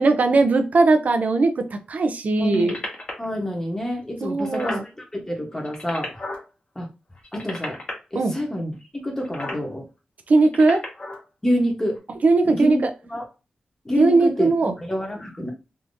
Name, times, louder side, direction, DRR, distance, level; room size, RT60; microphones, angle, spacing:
voice 1, 0.0-2.8 4.2-4.8 8.1-8.3 10.3-10.8 12.2-12.9 14.0-14.8, right 3 dB, 60° right, 7 dB, 0.6 m, -19 dB
sound 1, 2.4-3.2 3.9-4.0 4.2-4.8 5.5-6.4 7.2-7.9 9.2-9.6 10.4-11.2 12.0-12.1, left 2 dB, 45° left, 1.4 m, -33 dB
voice 2, 2.4-2.8 3.2-6.2 6.7-6.9 7.3-7.8 8.1-8.8 9.0-9.9 11.4-12.0 12.4-12.8 13.1-13.2 13.8-15.5, equal, 15° left, 0 dB, 1.1 m, -27 dB
3.5 x 2.8 x 2.7 m, 0.30 s
wide cardioid pair, 110°, 3 cm